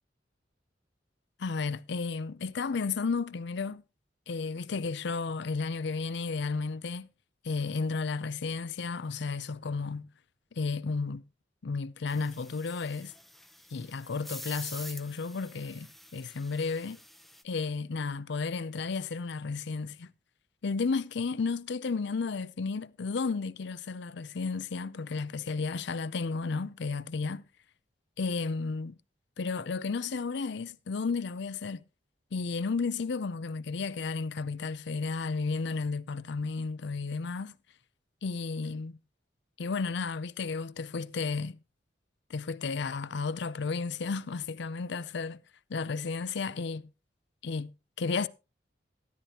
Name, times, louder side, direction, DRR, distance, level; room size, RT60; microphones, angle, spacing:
voice 1, 1.4-3.8 4.3-7.1 7.4-10.1 10.6-11.2 11.6-13.1 13.7-17.0 17.4-20.1 20.6-27.4 28.2-28.9 29.4-31.8 32.3-37.5 38.2-39.0 39.6-41.6 42.3-45.4 45.7-46.8 47.4-47.7 48.0-48.3, left 4 dB, 65° left, 0.5 m, -33 dB
sound 1, 12.1-17.4, equal, ahead, 0.7 m, -48 dB
13.0 x 13.0 x 2.9 m
head